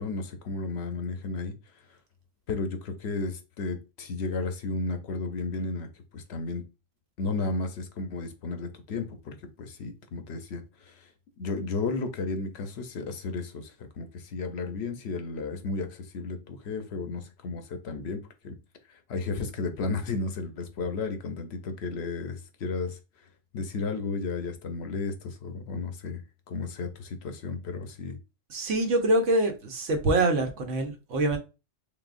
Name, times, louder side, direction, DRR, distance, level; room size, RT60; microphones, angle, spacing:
voice 1, 0.0-1.5 2.5-5.9 6.1-6.7 7.2-11.1 11.4-18.6 18.9-23.0 23.5-28.2, left 3 dB, 60° left, 0.9 m, -33 dB
voice 2, 28.5-31.4, right 2 dB, 70° right, 1.2 m, -25 dB
4.0 x 3.5 x 2.5 m
omnidirectional pair, 1.3 m